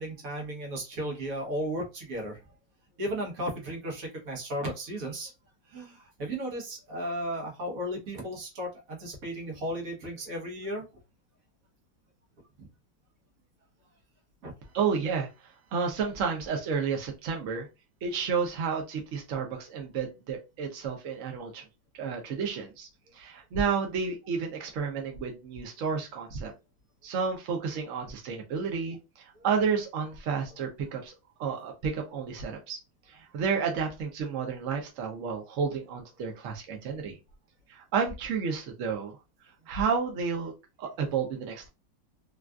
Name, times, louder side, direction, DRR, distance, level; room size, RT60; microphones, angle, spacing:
voice 1, 0.0-2.4 3.0-5.3 5.7-10.9 12.6-12.7 14.4-14.5 29.4-29.5 39.7-39.8, equal, 55° right, 0 dB, 1.3 m, -35 dB
voice 2, 14.7-15.3 15.7-17.7 18.0-21.6 22.0-22.9 23.1-26.5 27.0-31.1 31.4-32.8 33.3-37.2 37.7-39.2 39.7-40.5 40.8-41.7, right 6 dB, 70° right, 2 dB, 0.7 m, -31 dB
3.5 x 2.3 x 2.3 m, 0.26 s
omnidirectional pair, 2.0 m